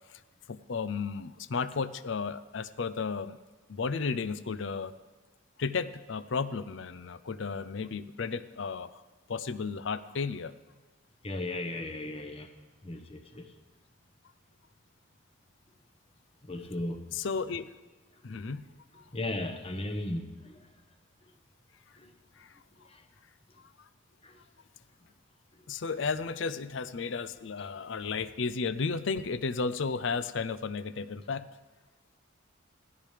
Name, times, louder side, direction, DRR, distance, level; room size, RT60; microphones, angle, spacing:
voice 1, 0.5-3.4 3.7-4.9 5.6-9.0 9.3-10.5 17.1-17.7 18.2-19.1 22.4-22.6 23.6-23.9 25.7-31.5, left 5 dB, 65° left, 14 dB, 0.5 m, -33 dB
voice 2, 11.2-12.5 12.8-13.5 16.4-17.0 19.1-20.7 22.0-22.1 22.9-23.0 24.2-24.4, left 1 dB, 30° left, 6 dB, 0.9 m, -36 dB
17.5 x 13.5 x 3.3 m, 1.3 s
head